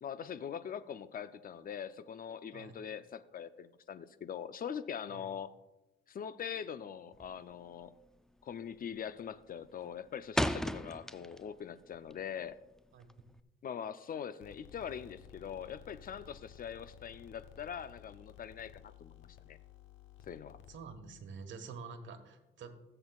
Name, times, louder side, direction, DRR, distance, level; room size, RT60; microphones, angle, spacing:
voice 1, 0.0-5.5 6.1-7.9 8.4-12.6 13.6-19.6 20.3-20.6, left 8 dB, 45° left, 13 dB, 0.6 m, -42 dB
sound 1, 7.1-7.5 7.8-8.2 8.5-8.9 9.3-11.6 11.9-13.4, equal, 5° left, 0.4 m, -35 dB
sound 2, 14.4-21.2, left 9 dB, 75° left, 0.9 m, -56 dB
voice 2, 20.7-22.7, right 5 dB, 70° right, 6 dB, 1.4 m, -47 dB
17.0 x 7.9 x 2.4 m, 1.0 s
cardioid pair, 90°, 20 cm